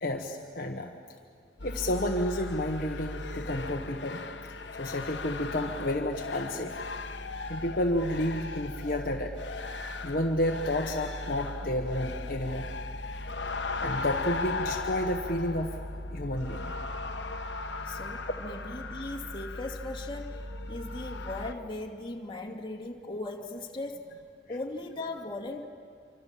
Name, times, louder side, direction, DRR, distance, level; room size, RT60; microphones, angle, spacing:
voice 1, 0.0-0.9 1.6-4.2 4.8-6.7 7.5-9.3 10.0-12.7 13.8-15.8 16.1-16.7 18.2-18.3 24.5-24.6, left 1 dB, 50° left, 2 dB, 1.4 m, -31 dB
sound 1, 1.6-21.5, left 2 dB, 70° left, 1.4 m, -37 dB
voice 2, 17.8-24.1 24.5-25.7, left 2 dB, 25° left, 1 dB, 2.4 m, -38 dB
27.0 x 25.5 x 7.5 m, 2.3 s
head